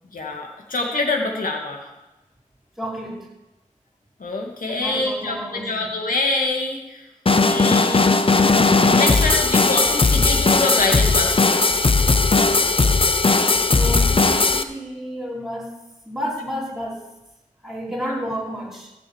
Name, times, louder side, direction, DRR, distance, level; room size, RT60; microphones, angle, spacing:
voice 1, 0.1-1.8 4.2-7.0 7.4-8.2 8.4-11.9 18.0-18.2, left 2 dB, 85° left, 1 dB, 2.6 m, -26 dB
voice 2, 2.8-3.3 4.7-5.9 13.7-15.8 16.0-17.1 17.6-18.9, equal, ahead, -4 dB, 5.2 m, -31 dB
sound 1, 7.3-14.6, left 3 dB, 40° left, 0.9 m, -17 dB
15.5 x 7.0 x 7.4 m, 1.0 s
wide cardioid pair, 55°, 14 cm